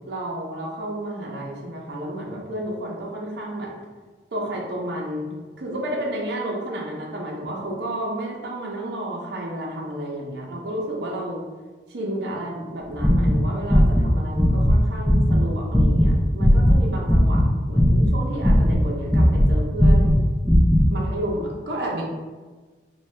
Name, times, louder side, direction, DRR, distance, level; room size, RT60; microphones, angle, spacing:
voice 1, 0.1-3.7 4.3-11.4 11.9-17.4 17.7-20.1 20.9-22.0, right 1 dB, 70° right, -2 dB, 0.6 m, -31 dB
sound 1, 13.0-14.1 14.4-14.7 15.0-17.5 17.7-19.5 19.8-20.8, equal, 5° left, 0.3 m, -17 dB
2.7 x 2.2 x 3.2 m, 1.3 s
head